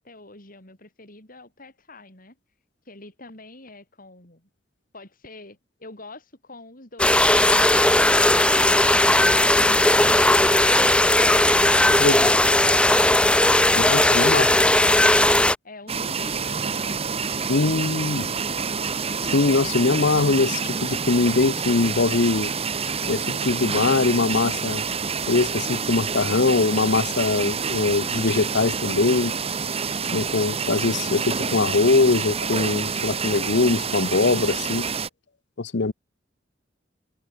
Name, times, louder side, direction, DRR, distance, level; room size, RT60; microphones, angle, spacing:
voice 1, 0.0-2.4 2.9-4.5 4.9-8.3 13.7-15.2 15.6-17.1 17.9-18.6, left 2 dB, 50° left, 7.4 m, -44 dB
sound 1, 7.0-15.6, left 1 dB, 5° left, 0.7 m, -17 dB
voice 2, 13.8-14.5 17.5-18.3 19.3-22.5 23.1-24.8 25.3-29.3 30.1-34.9 35.6-35.9, left 3 dB, 65° left, 0.8 m, -22 dB
sound 2, 15.9-35.1, right 5 dB, 35° right, 1.1 m, -28 dB
head